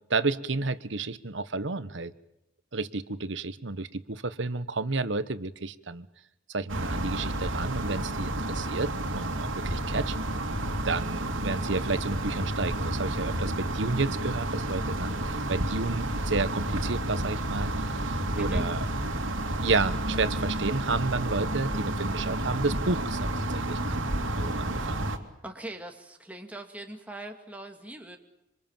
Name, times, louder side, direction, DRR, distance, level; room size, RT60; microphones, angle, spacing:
voice 1, 0.1-2.1 2.7-6.1 6.5-10.2 10.8-17.7 18.0-18.8 19.6-24.1 24.3-25.0, right 3 dB, 65° right, 13 dB, 1.2 m, -31 dB
sound 1, 6.7-25.2, right 1 dB, 85° right, 2.8 m, -30 dB
voice 2, 18.4-18.7 25.4-28.2, right 1 dB, 10° right, 3 dB, 2.4 m, -40 dB
26.5 x 26.0 x 7.4 m, 0.86 s
head